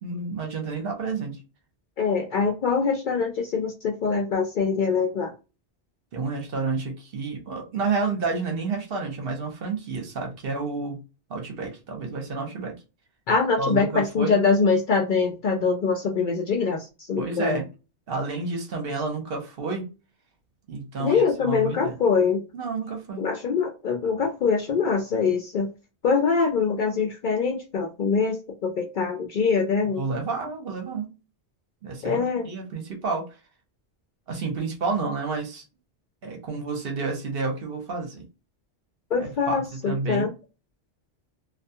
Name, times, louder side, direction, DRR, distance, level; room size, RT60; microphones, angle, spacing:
voice 1, 0.0-1.4 6.1-11.0 11.3-12.7 13.6-14.4 17.2-17.7 18.1-19.8 20.7-21.9 22.5-23.2 30.0-31.1 31.8-33.3 34.3-35.6 36.2-38.2 39.2-40.3, right 4 dB, 60° right, 0.9 m, -30 dB
voice 2, 2.0-5.3 13.3-17.6 21.0-22.4 23.2-25.7 26.0-30.0 32.0-32.5 39.1-40.3, left 5 dB, 60° left, 0.6 m, -24 dB
2.4 x 2.2 x 2.6 m
omnidirectional pair, 1.2 m